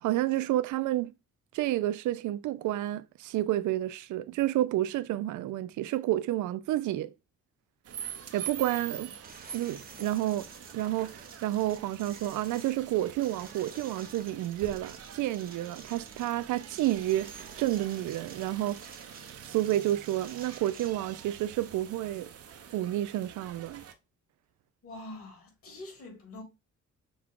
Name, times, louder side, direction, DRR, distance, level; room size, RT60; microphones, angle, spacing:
voice 1, 0.0-1.1 1.5-7.1 8.3-9.1 9.5-10.5 10.7-18.8 19.4-22.3 22.7-23.8, right 14 dB, 75° right, 0.5 m, -30 dB
sound 1, 7.8-23.9, right 8 dB, 55° right, 0.8 m, -45 dB
sound 2, 9.2-20.9, right 4 dB, 30° right, 1.1 m, -51 dB
voice 2, 24.8-26.4, left 2 dB, 50° left, 2.5 m, -44 dB
6.2 x 2.3 x 3.6 m
cardioid pair, 90°, 30 cm